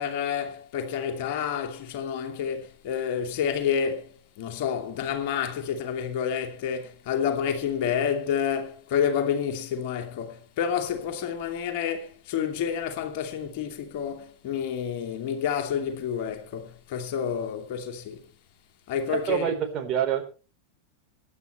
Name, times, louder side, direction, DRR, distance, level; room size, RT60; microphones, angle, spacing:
voice 1, 0.0-18.2 18.9-19.5, left 8 dB, 45° left, 2.6 m, -29 dB
voice 2, 19.1-20.2, right 9 dB, 30° right, 3.9 m, -26 dB
24.0 x 10.5 x 3.2 m
figure-of-eight pair, 90°, 0 cm